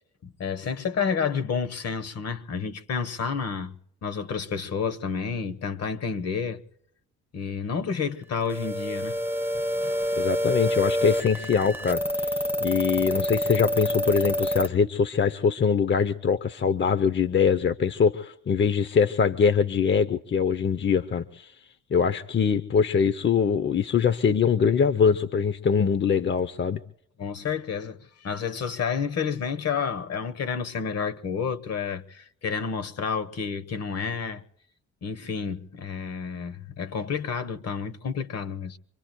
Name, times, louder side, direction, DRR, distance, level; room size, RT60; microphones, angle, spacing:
voice 1, 0.2-3.7 4.0-6.6 7.3-9.2 9.5-10.2 27.2-34.4 35.0-38.8, left 6 dB, 55° left, 1.3 m, -30 dB
sound 1, 8.5-14.7, equal, 5° right, 0.8 m, -27 dB
voice 2, 10.1-21.5 21.9-26.8, left 6 dB, 40° left, 0.7 m, -23 dB
26.5 x 23.5 x 2.2 m
cardioid pair, 90°, 30 cm